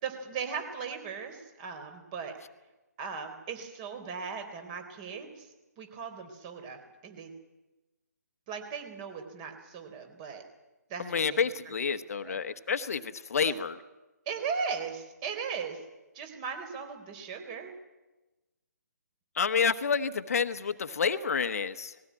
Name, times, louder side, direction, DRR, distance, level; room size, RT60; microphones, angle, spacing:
voice 1, 0.0-2.4 3.0-5.5 5.8-7.3 8.5-10.4 10.9-12.4 13.5-13.6 14.3-15.8 16.1-17.7, right 6 dB, 25° right, 6 dB, 3.8 m, -38 dB
voice 2, 11.0-13.8 19.4-21.9, left 6 dB, 55° left, 10 dB, 1.1 m, -29 dB
20.0 x 16.5 x 9.6 m, 1.1 s
figure-of-eight pair, 145°, 10 cm